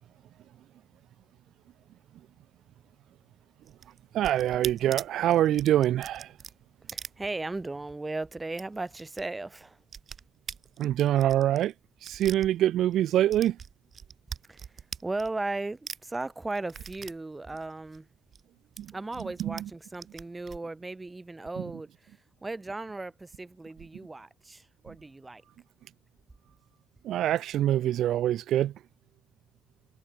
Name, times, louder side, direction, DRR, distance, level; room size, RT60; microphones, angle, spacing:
sound 1, 3.6-7.8 8.1-8.2 8.5-9.2 9.5-13.0 13.3-15.6 15.9-18.4 18.8-19.6 19.9-20.6, right 7 dB, 50° right, 1.9 m, -42 dB
voice 1, 4.1-6.3 10.8-11.7 12.0-13.5 27.0-28.7, right 12 dB, 80° right, 0.9 m, -24 dB
voice 2, 6.9-9.8 14.5-14.7 15.0-18.1 18.9-25.4, right 2 dB, 20° right, 3.8 m, -36 dB
cardioid pair, 90°, 0 cm